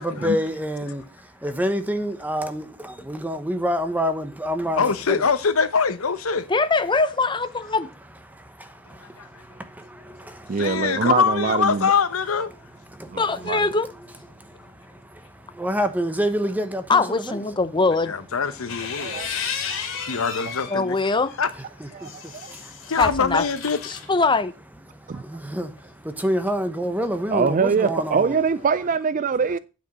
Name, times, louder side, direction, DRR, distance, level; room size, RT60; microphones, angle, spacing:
voice 1, 0.0-5.3 8.3-10.7 12.9-13.2 14.3-17.4 19.0-20.2 21.8-22.1 22.5-22.9 24.9-28.4, equal, 10° right, 0.9 m, -28 dB
voice 2, 4.8-6.5 9.2-9.3 10.6-12.5 18.1-19.2 20.1-21.0 21.4-21.5 22.9-24.0, left 5 dB, 90° left, 0.9 m, -23 dB
voice 3, 6.5-7.9 13.2-13.9 16.9-18.1 20.7-21.3 23.0-23.4 23.9-24.5, left 3 dB, 20° left, 0.7 m, -22 dB
voice 4, 10.5-11.9 13.1-13.6 19.0-19.3 21.9-22.1 22.4-22.5 25.1-25.2 27.3-29.6, right 5 dB, 40° right, 0.4 m, -23 dB
sound 1, 18.4-20.8 21.3-24.1, left 6 dB, 65° left, 2.2 m, -33 dB
8.9 x 5.2 x 6.1 m
head